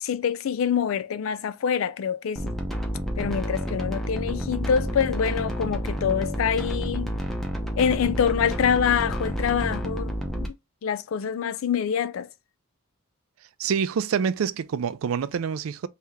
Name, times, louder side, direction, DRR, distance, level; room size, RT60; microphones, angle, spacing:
voice 1, 0.0-2.6 3.2-7.1 7.8-10.6 10.8-12.3, left 7 dB, 75° left, 0.4 m, -25 dB
sound 1, 2.4-10.5, equal, ahead, 0.6 m, -30 dB
voice 2, 13.6-15.9, right 6 dB, 85° right, 0.4 m, -26 dB
3.2 x 2.8 x 3.5 m
head